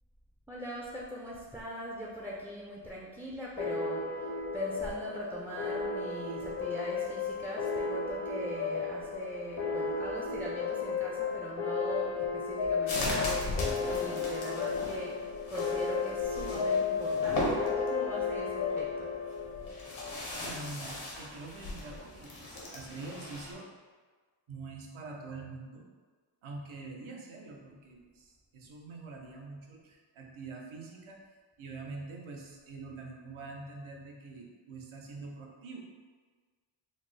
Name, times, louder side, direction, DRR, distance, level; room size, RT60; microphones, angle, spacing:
voice 1, 0.5-19.1, right 1 dB, 5° right, -5 dB, 0.3 m, -41 dB
sound 1, 3.6-20.7, left 5 dB, 55° left, 0.6 m, -34 dB
sound 2, 12.9-23.5, left 1 dB, 75° left, 0.9 m, -38 dB
voice 2, 20.4-23.7 24.5-25.8 26.4-31.2 31.6-35.8, right 3 dB, 80° right, 0 dB, 0.7 m, -45 dB
4.1 x 2.0 x 3.2 m, 1.5 s
wide cardioid pair, 80°, 48 cm